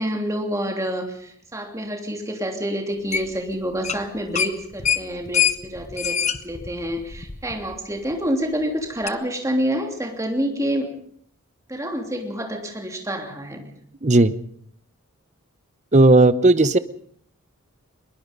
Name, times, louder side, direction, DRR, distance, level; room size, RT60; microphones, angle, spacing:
voice 1, 0.0-10.9 11.7-13.7, equal, 15° right, 2 dB, 3.1 m, -27 dB
sound 1, 3.1-3.5 3.8-4.0 4.3-7.7 8.1-8.2 9.1-9.2, left 8 dB, 30° left, 0.8 m, -24 dB
voice 2, 14.0-14.3 15.9-16.8, right 2 dB, 30° right, 14 dB, 0.8 m, -14 dB
22.0 x 22.0 x 5.4 m, 0.65 s
head